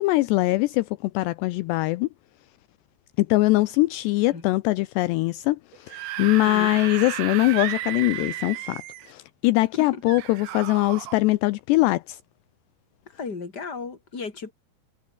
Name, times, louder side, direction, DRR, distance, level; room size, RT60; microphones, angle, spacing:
voice 1, 0.0-2.1 3.2-8.8 9.1-12.2, left 20 dB, 85° left, 2.4 m, -22 dB
Screaming / Screech, 5.7-9.1 10.1-11.2, right 14 dB, 90° right, 4.1 m, -33 dB
voice 2, 6.4-6.7 9.7-10.0 13.1-14.5, left 4 dB, 20° left, 3.9 m, -35 dB
omnidirectional pair, 5.6 m